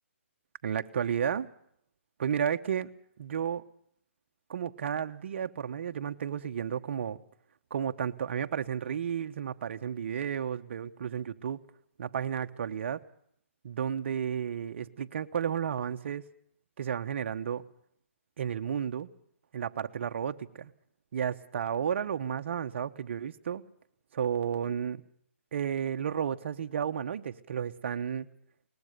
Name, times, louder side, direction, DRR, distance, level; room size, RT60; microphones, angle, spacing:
voice 1, 0.6-1.5 2.2-2.9 3.2-3.6 4.5-7.2 7.7-11.6 12.0-13.0 13.6-16.2 16.8-17.6 18.4-19.1 19.5-20.7 21.1-23.6 24.1-25.0 25.5-28.3, right 8 dB, 55° right, 8 dB, 1.2 m, -32 dB
21.5 x 19.5 x 6.7 m, 0.68 s
hypercardioid pair, 155°, 7 cm